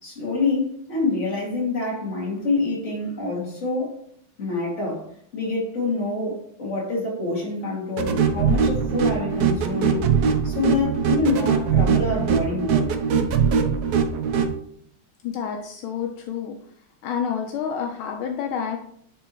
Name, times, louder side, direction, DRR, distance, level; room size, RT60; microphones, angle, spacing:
voice 1, 0.0-4.0 4.4-10.1 10.4-13.0 15.5-15.6, left 3 dB, 35° left, -4 dB, 2.5 m, -26 dB
sound 1, 8.0-14.5, right 6 dB, 70° right, 0.9 m, -21 dB
voice 2, 15.2-16.5 17.0-18.8, left 7 dB, 80° left, 3 dB, 1.4 m, -28 dB
10.0 x 3.4 x 3.0 m, 0.67 s
omnidirectional pair, 2.3 m